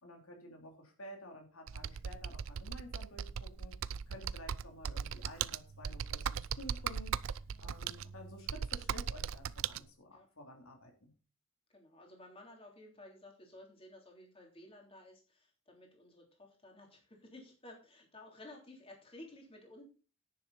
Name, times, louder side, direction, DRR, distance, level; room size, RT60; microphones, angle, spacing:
voice 1, 0.0-3.7 4.1-7.2 7.6-11.1, left 1 dB, 80° left, 2 dB, 3.1 m, -52 dB
Computer keyboard, 1.7-9.8, right 7 dB, 70° right, 0.5 m, -39 dB
voice 2, 11.7-19.8, left 1 dB, 25° left, 1 dB, 3.4 m, -55 dB
10.5 x 9.5 x 4.1 m, 0.36 s
head